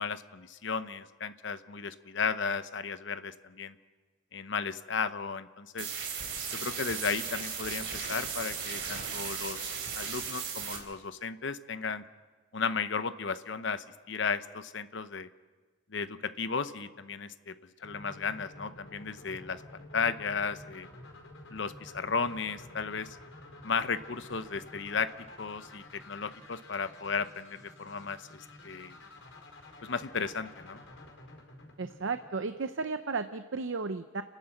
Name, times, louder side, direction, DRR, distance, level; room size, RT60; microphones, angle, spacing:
voice 1, 0.0-3.7 4.3-5.9 6.6-12.0 12.5-15.3 15.9-17.5 17.8-20.9 21.5-23.2 23.6-25.1 25.4-28.9 29.8-30.8, left 5 dB, 65° left, 12 dB, 0.8 m, -34 dB
sound 1, 5.8-10.8, right 6 dB, 60° right, 3.8 m, -36 dB
sound 2, 17.8-32.7, left 2 dB, 80° left, 4.6 m, -51 dB
voice 2, 31.8-34.2, right 4 dB, 75° right, 10 dB, 0.7 m, -34 dB
29.5 x 11.5 x 7.8 m, 1.4 s
head